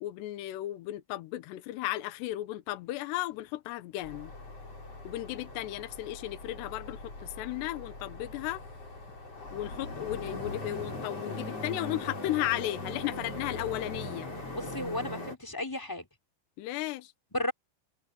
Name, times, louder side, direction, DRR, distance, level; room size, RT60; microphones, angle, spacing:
voice 1, 0.0-4.3 5.0-8.6 9.5-14.3 16.6-17.1, left 15 dB, 80° left, 3.2 m, -35 dB
sound 1, 4.0-15.4, left 2 dB, 35° left, 7.6 m, -40 dB
voice 2, 14.5-16.0 17.3-17.5, left 1 dB, 5° left, 4.6 m, -34 dB
omnidirectional pair, 4.8 m